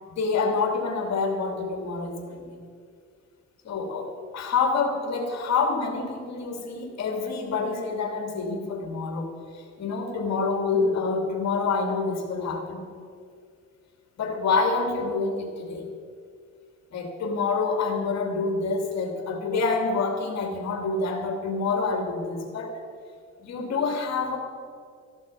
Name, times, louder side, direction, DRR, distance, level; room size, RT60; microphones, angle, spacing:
voice 1, 0.2-2.5 3.6-12.9 14.2-15.9 16.9-22.8 23.4-24.4, left 4 dB, 60° left, 3 dB, 2.8 m, -27 dB
14.0 x 11.5 x 5.7 m, 2.2 s
cardioid pair, 90°, 30 cm